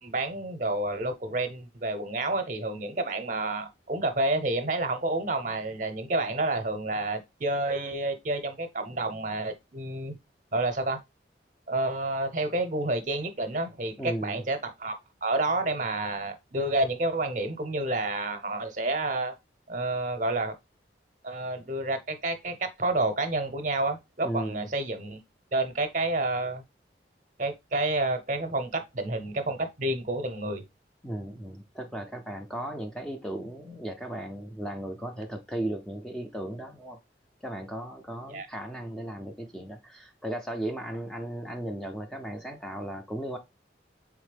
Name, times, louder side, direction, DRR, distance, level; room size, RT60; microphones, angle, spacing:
voice 1, 0.0-10.1 10.5-11.0 11.7-19.3 19.7-20.5 21.2-25.2 25.5-26.6 27.4-30.6 38.3-38.5, right 2 dB, 45° right, 0.7 m, -29 dB
voice 2, 14.0-14.4 24.2-24.7 31.0-37.0 37.4-43.4, right 1 dB, 5° left, 0.4 m, -36 dB
4.0 x 3.6 x 3.3 m
head